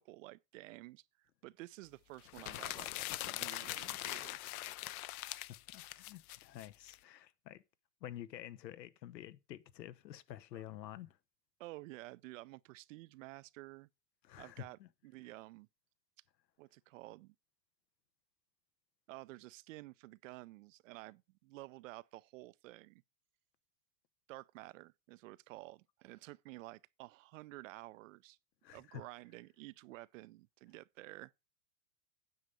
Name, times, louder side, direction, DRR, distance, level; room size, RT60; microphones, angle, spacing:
voice 1, 0.0-2.9 3.2-4.4 10.5-10.6 11.6-13.9 14.4-15.7 16.6-17.3 19.1-23.0 24.3-28.4 28.7-31.3, right 19 dB, 55° right, 0.5 m, -52 dB
sound 1, 2.3-7.0, left 16 dB, 60° left, 0.7 m, -42 dB
voice 2, 5.7-7.6 8.0-11.2 14.2-14.9 28.6-29.1, left 12 dB, 85° left, 1.2 m, -49 dB
9.3 x 5.7 x 6.6 m
hypercardioid pair, 130°, 50 cm